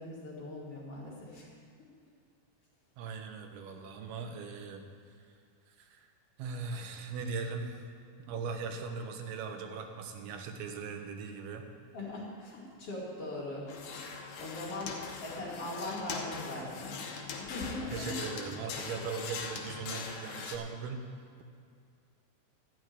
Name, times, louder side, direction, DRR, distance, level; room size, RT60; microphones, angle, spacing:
voice 1, 0.0-1.5 11.9-13.7 14.3-17.1 17.4-18.1 18.9-19.1, left 2 dB, 45° left, -5 dB, 2.8 m, -40 dB
voice 2, 3.0-5.2 5.7-6.1 6.4-7.8 8.2-11.7 17.9-21.0, right 5 dB, 90° right, 5 dB, 2.9 m, -39 dB
sound 1, 13.7-20.6, left 5 dB, 65° left, 1.8 m, -41 dB
13.0 x 6.1 x 9.5 m, 2.2 s
omnidirectional pair, 4.4 m